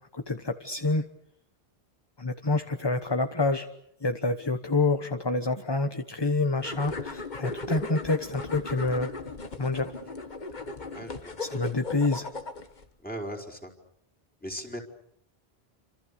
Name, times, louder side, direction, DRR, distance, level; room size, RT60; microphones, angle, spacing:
voice 1, 0.1-1.1 2.2-3.7 4.0-9.1 9.6-9.9 11.4-12.3, left 2 dB, 25° left, 8 dB, 1.2 m, -27 dB
sound 1, 6.6-12.9, left 3 dB, 45° left, 1.7 m, -37 dB
voice 2, 10.9-11.3 13.0-13.7 14.4-14.8, equal, 10° left, 2 dB, 4.8 m, -38 dB
29.0 x 26.5 x 6.9 m, 0.72 s
omnidirectional pair, 1.0 m